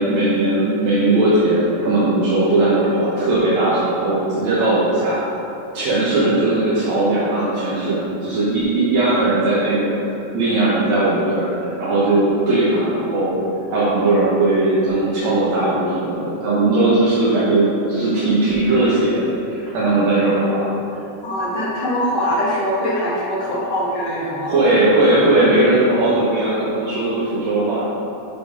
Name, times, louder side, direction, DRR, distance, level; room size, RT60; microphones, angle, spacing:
voice 1, 0.0-5.2 5.7-13.4 13.7-20.7 24.5-27.9, right 2 dB, 65° right, -9 dB, 2.1 m, -18 dB
voice 2, 21.2-24.5, equal, 55° left, -6 dB, 1.3 m, -22 dB
7.2 x 4.2 x 5.0 m, 2.8 s
omnidirectional pair, 3.7 m